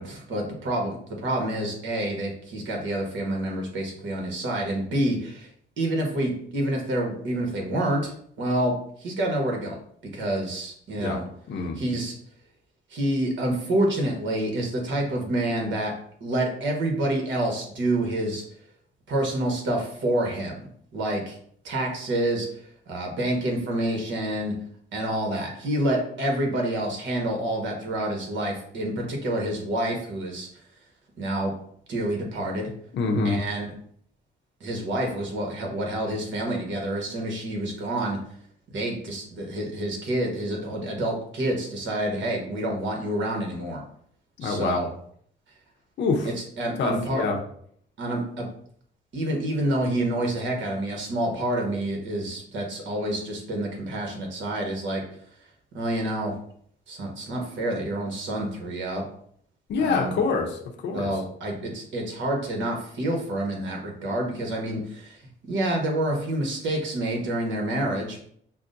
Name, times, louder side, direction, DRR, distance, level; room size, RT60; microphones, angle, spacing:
voice 1, 0.0-5.5 5.8-8.1 8.4-9.8 10.1-11.2 11.8-12.1 12.9-15.9 16.2-18.4 19.1-21.3 21.6-22.5 22.9-24.5 24.9-30.5 31.2-31.5 31.9-32.7 33.2-33.7 34.6-38.2 38.7-43.8 44.4-44.9 46.2-47.2 48.0-48.4 49.1-55.0 55.7-56.3 56.9-59.0 59.8-60.2 60.9-65.2 65.5-68.3, right 1 dB, 70° right, 1 dB, 1.1 m, -28 dB
voice 2, 32.9-33.4 44.4-44.8 46.0-46.3 46.8-47.4 59.7-61.2, left 4 dB, 65° left, 1 dB, 0.7 m, -25 dB
5.7 x 2.1 x 2.6 m, 0.64 s
cardioid pair, 90°, 20 cm